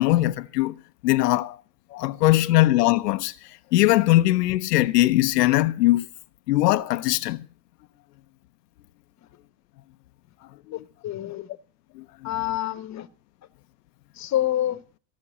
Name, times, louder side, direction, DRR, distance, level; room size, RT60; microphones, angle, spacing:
voice 1, 0.0-1.6 1.9-6.1 6.5-7.5 10.7-10.8 11.9-12.3, left 16 dB, 90° left, 0.8 m, -21 dB
voice 2, 10.7-11.5 12.2-13.1 14.1-14.8, left 13 dB, 35° left, 1.2 m, -27 dB
16.0 x 6.2 x 9.8 m
supercardioid pair, 100°, 46 cm